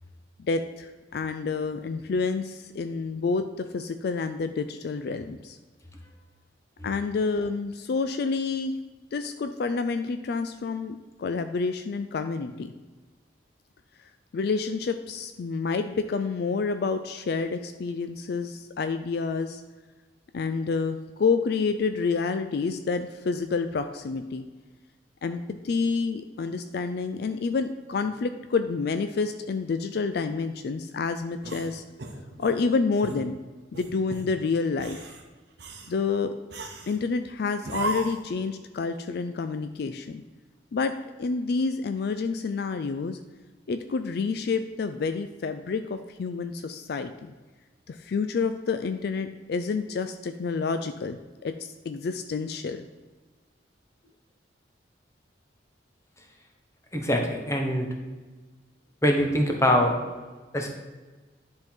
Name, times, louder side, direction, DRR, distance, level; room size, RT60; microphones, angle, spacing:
voice 1, 0.4-3.5 3.7-5.6 6.8-8.7 9.1-12.7 14.3-19.6 20.3-24.4 25.2-31.8 32.4-33.4 33.7-35.1 35.9-36.3 36.9-40.2 40.7-43.2 43.7-47.3 47.9-52.8, left 4 dB, 60° left, 9 dB, 0.3 m, -28 dB
sound 1, 31.4-32.6 33.0-33.3 33.7-34.3 34.7-35.2 35.6-35.9 36.5-37.0 37.6-38.3, right 2 dB, 60° right, 0.9 m, -35 dB
voice 2, 56.9-57.9 59.0-59.9 60.5-60.7, left 1 dB, 15° left, 2 dB, 1.0 m, -23 dB
10.5 x 3.8 x 4.4 m, 1.3 s
head